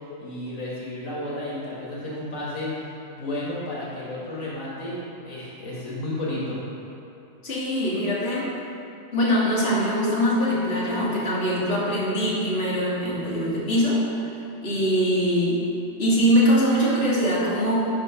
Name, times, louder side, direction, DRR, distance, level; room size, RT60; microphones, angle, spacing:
voice 1, 0.2-2.7 3.1-6.6, left 1 dB, 80° left, -6 dB, 1.7 m, -32 dB
voice 2, 7.4-8.5 9.1-14.0 14.6-15.6 16.0-17.9, equal, 50° left, -8 dB, 1.7 m, -22 dB
6.1 x 4.8 x 5.5 m, 2.8 s
omnidirectional pair, 1.4 m